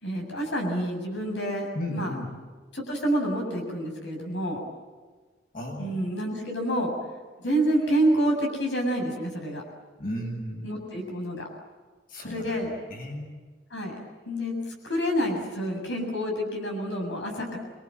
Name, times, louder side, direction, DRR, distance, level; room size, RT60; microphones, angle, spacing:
voice 1, 0.0-2.1 2.7-4.6 5.8-6.9 7.4-9.6 10.6-11.5 12.2-12.7 13.7-14.0 14.3-14.5 14.8-17.6, right 1 dB, 85° left, 2 dB, 7.4 m, -28 dB
voice 2, 1.7-2.3 5.5-6.1 10.0-10.7 12.1-12.6 12.9-13.3, equal, 55° left, 2 dB, 8.0 m, -34 dB
28.5 x 23.5 x 7.6 m, 1.4 s
head